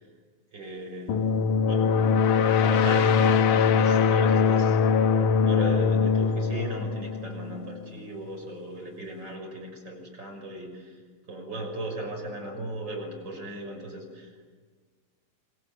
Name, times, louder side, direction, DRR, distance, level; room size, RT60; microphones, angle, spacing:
voice 1, 0.5-1.3 1.7-2.0 2.4-4.8 5.4-11.0 11.3-14.3, right 1 dB, 25° right, 1 dB, 6.7 m, -37 dB
sound 1, 1.1-7.7, left 6 dB, 80° left, 1.8 m, -22 dB
28.5 x 24.5 x 8.6 m, 1.5 s
omnidirectional pair, 5.4 m